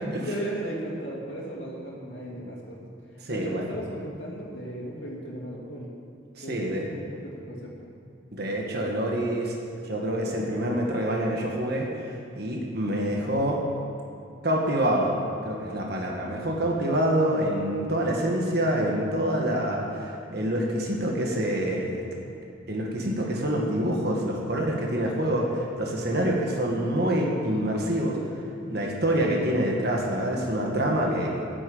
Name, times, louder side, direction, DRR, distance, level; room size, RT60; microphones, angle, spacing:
voice 1, 0.2-2.8 3.1-5.9 6.4-7.7, right 1 dB, 60° left, -5 dB, 2.8 m, -36 dB
voice 2, 3.2-3.6 6.4-6.9 8.3-9.5 9.8-12.1 12.4-13.6 14.4-15.2 15.4-22.0 22.7-28.2 28.7-31.4, right 1 dB, 50° right, -1 dB, 1.7 m, -26 dB
10.5 x 10.5 x 7.8 m, 2.7 s
head